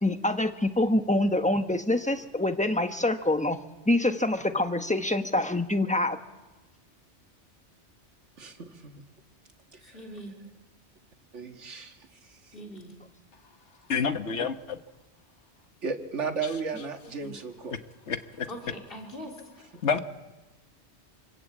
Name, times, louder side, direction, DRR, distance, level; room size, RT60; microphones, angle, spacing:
voice 1, 0.0-3.6 3.9-6.2 17.2-17.4, left 1 dB, 5° left, 1.1 m, -26 dB
voice 2, 8.4-9.0 9.7-9.8 11.3-12.0 12.3-12.4 15.8-17.8, right 5 dB, 85° right, 2.0 m, -34 dB
voice 3, 9.8-10.4 12.5-12.9 18.5-19.4, equal, 50° left, 3.6 m, -41 dB
voice 4, 13.9-14.8 18.1-18.5 19.8-20.0, left 6 dB, 75° left, 1.6 m, -28 dB
27.0 x 22.0 x 8.5 m
omnidirectional pair, 1.2 m